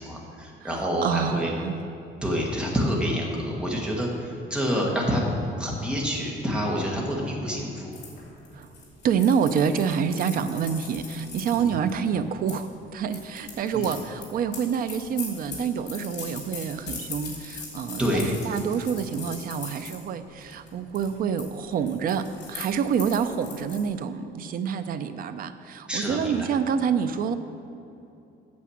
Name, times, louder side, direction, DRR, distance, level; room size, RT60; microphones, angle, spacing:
voice 1, 0.0-1.5 2.2-5.2 5.6-7.9 11.5-11.7 13.7-13.9 18.0-18.3 25.9-26.5, equal, 5° right, -3 dB, 1.5 m, -27 dB
voice 2, 0.6-1.7 8.5-8.7 9.0-27.3, right 7 dB, 50° right, 11 dB, 0.5 m, -27 dB
sound 1, 7.9-12.6 13.1-20.0 20.4-20.7 20.9-21.5 21.7-23.8, left 4 dB, 65° left, 2.7 m, -40 dB
8.5 x 7.0 x 7.1 m, 2.8 s
cardioid pair, 175°, 19 cm